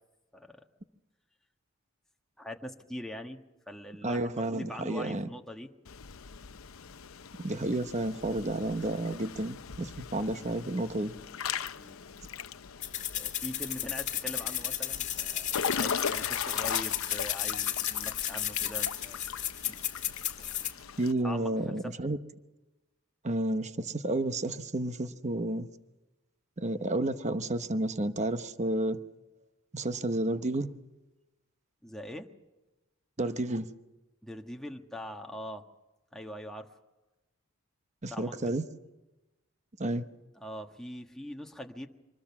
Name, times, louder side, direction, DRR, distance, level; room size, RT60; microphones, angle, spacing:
voice 1, 0.3-0.6 2.4-5.7 11.8-12.0 13.2-19.2 19.7-19.8 21.2-21.7 31.8-32.3 34.2-35.6 36.1-36.7 38.1-38.5 40.4-41.9, equal, ahead, 1.5 m, -42 dB
voice 2, 4.0-5.3 7.4-11.1 21.0-22.2 23.2-25.7 26.6-29.0 29.7-30.7 33.2-33.7 38.0-38.6 39.8-40.0, right 1 dB, 35° right, 1.0 m, -31 dB
Water / Splash splatter / Drip, 5.9-21.1, left 7 dB, 85° left, 0.7 m, -39 dB
sound 1, 12.8-20.7, left 11 dB, 35° left, 2.3 m, -33 dB
26.0 x 21.0 x 6.0 m
head